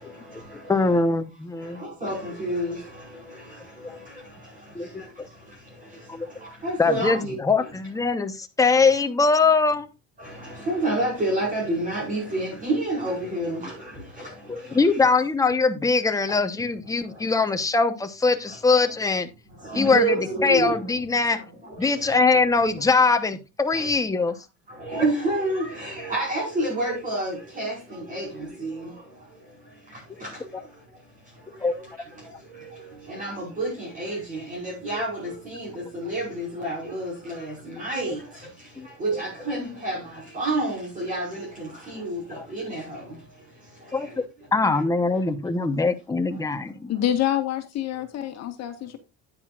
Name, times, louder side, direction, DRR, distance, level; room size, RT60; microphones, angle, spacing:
voice 1, 0.0-0.9 1.6-3.5 3.9-4.2 6.4-7.7 10.2-15.2 19.6-20.9 21.3-21.4 21.6-22.1 23.7-23.9 24.8-28.9 30.2-30.3 33.1-38.2 39.0-43.2, right 2 dB, 25° right, 5.0 m, -29 dB
voice 2, 0.5-1.8 3.8-4.0 4.7-5.3 6.1-6.3 6.8-9.9 14.5-19.3 19.7-20.2 20.4-21.4 21.8-24.4 31.6-31.7 38.8-38.9 43.9-44.1 44.5-46.9, left 4 dB, 10° left, 0.9 m, -22 dB
voice 3, 46.9-49.0, left 11 dB, 55° left, 1.5 m, -26 dB
10.5 x 9.4 x 2.4 m
cardioid pair, 145°, 30 cm